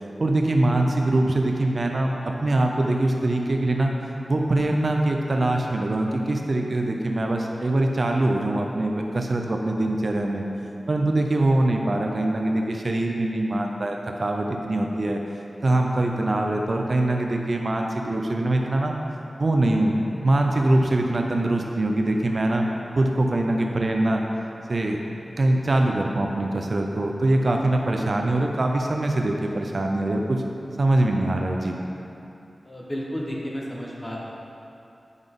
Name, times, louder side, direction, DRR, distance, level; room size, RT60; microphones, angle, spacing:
voice 1, 0.2-3.9 4.3-10.4 10.9-15.2 15.6-18.9 19.4-20.0 20.2-22.7 22.9-24.2 24.7-25.0 25.4-30.4 30.8-31.8, right 1 dB, 50° right, 2 dB, 0.5 m, -23 dB
voice 2, 32.6-34.2, equal, 20° left, -4 dB, 1.1 m, -32 dB
7.9 x 5.2 x 3.7 m, 2.8 s
wide cardioid pair, 90°, 0 cm